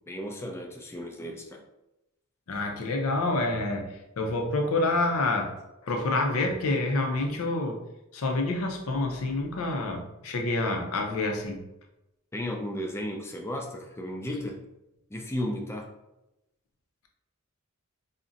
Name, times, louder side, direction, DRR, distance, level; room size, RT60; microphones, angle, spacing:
voice 1, 0.1-1.6 12.3-14.6 15.1-15.9, left 1 dB, 10° left, 2 dB, 0.3 m, -34 dB
voice 2, 2.5-5.5 5.8-7.8 8.1-11.6, left 2 dB, 65° left, 3 dB, 0.5 m, -28 dB
2.4 x 2.1 x 3.8 m, 0.91 s
head